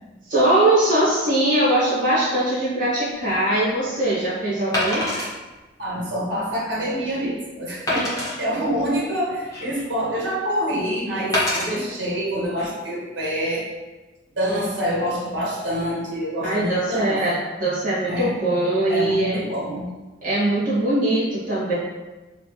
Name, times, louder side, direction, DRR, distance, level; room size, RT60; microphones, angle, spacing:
voice 1, 0.2-5.1 16.4-19.4 20.2-21.7, right 1 dB, 45° right, -9 dB, 1.5 m, -21 dB
Wood, 3.1-3.3 4.7-5.3 6.0-6.1 6.6-6.7 7.9-8.4 9.1-9.9 11.3-11.7 12.4-12.6, left 1 dB, 15° left, 0.8 m, -25 dB
voice 2, 5.8-13.7 14.3-17.4 18.0-18.4 18.9-19.9, equal, 65° right, -5 dB, 1.0 m, -26 dB
3.2 x 2.8 x 3.0 m, 1.2 s
head